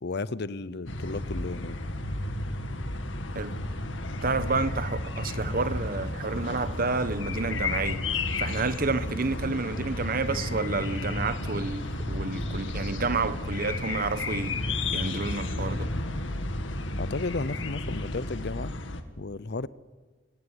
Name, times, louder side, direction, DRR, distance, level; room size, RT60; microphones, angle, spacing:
voice 1, 0.0-1.8 17.0-18.7 19.2-19.7, left 3 dB, 60° left, 0.7 m, -33 dB
sound 1, 0.9-19.0, left 2 dB, 80° left, 2.2 m, -32 dB
voice 2, 4.2-8.0 8.4-15.9, right 3 dB, 50° right, 1.2 m, -30 dB
27.0 x 18.0 x 10.0 m
head